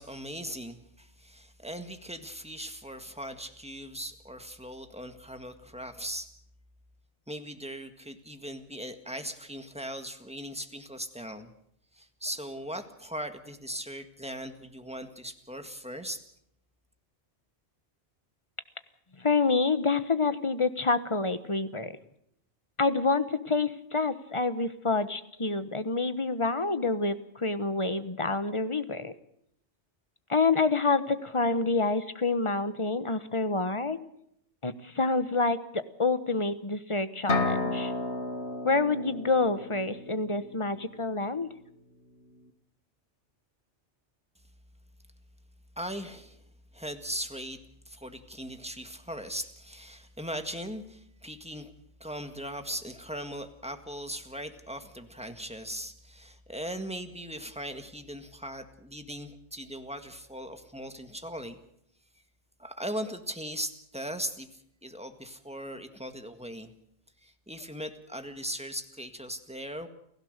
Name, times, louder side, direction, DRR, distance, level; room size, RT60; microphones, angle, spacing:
voice 1, 0.0-6.3 7.3-11.5 11.9-16.2 45.8-46.4 46.7-47.6 47.9-51.7 52.0-61.6 62.6-66.7 67.2-69.9, equal, 5° right, 7 dB, 1.7 m, -39 dB
voice 2, 19.2-22.0 22.8-29.1 30.3-34.0 34.6-37.9 38.6-41.5, left 3 dB, 30° left, 12 dB, 1.1 m, -27 dB
sound 1, 37.3-41.0, left 3 dB, 60° left, 2.1 m, -32 dB
29.0 x 16.0 x 6.7 m, 0.74 s
omnidirectional pair, 1.2 m